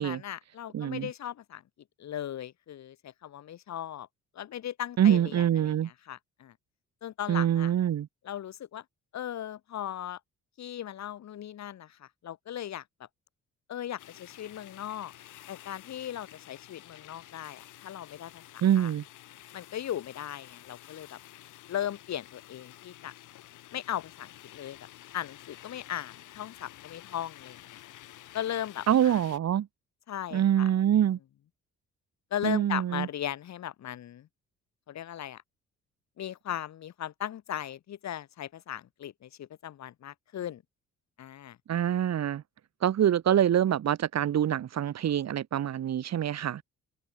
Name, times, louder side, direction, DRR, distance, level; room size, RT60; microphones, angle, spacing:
voice 1, 0.0-1.6 2.0-4.1 4.4-5.7 6.1-6.5 7.0-7.7 8.3-8.8 9.1-10.2 10.6-12.8 13.7-15.1 15.5-18.9 19.5-21.2 21.7-23.1 23.7-24.8 25.1-27.8 28.3-29.2 30.1-30.7 32.3-34.3 34.9-35.4 36.2-40.6 41.2-41.6, left 11 dB, 65° left, 1.9 m, -37 dB
voice 2, 0.7-1.1 5.0-5.9 7.3-8.1 18.6-19.0 28.9-29.7 30.3-31.2 32.4-33.1 41.7-42.4 42.8-46.6, right 10 dB, 60° right, 2.1 m, -25 dB
sound 1, 14.0-29.4, left 14 dB, 80° left, 3.7 m, -51 dB
open air
cardioid pair, 90°, 30 cm